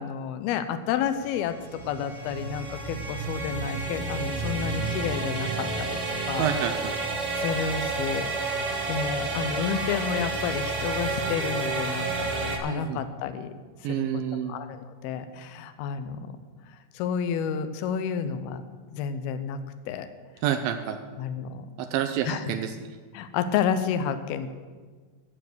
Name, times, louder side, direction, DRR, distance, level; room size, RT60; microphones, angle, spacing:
voice 1, 0.0-6.0 6.3-6.5 7.4-8.3 8.9-13.5 13.9-14.1 14.5-16.4 16.9-18.6 18.9-19.6 19.9-20.1 21.2-21.7 22.3-22.4 23.1-24.5, left 7 dB, 80° left, 10 dB, 2.5 m, -30 dB
sound 1, 1.2-12.6, right 3 dB, 60° right, 1.5 m, -30 dB
voice 2, 6.4-7.0 12.7-13.0 13.8-14.6 20.4-21.0 21.8-23.0, right 9 dB, 85° right, 7 dB, 2.1 m, -28 dB
14.0 x 7.5 x 6.3 m, 1.5 s
omnidirectional pair, 4.8 m